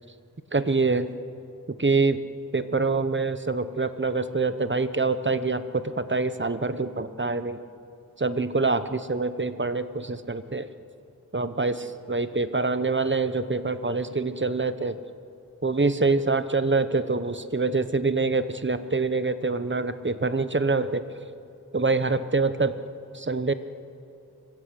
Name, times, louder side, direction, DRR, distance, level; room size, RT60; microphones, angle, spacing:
voice 1, 0.5-1.1 1.8-2.2 2.5-7.6 8.2-10.7 11.3-15.0 15.6-21.1 21.7-22.7 23.1-23.5, right 3 dB, 30° right, 11 dB, 1.1 m, -25 dB
25.5 x 23.5 x 8.4 m, 2.7 s
wide cardioid pair, 70°, 36 cm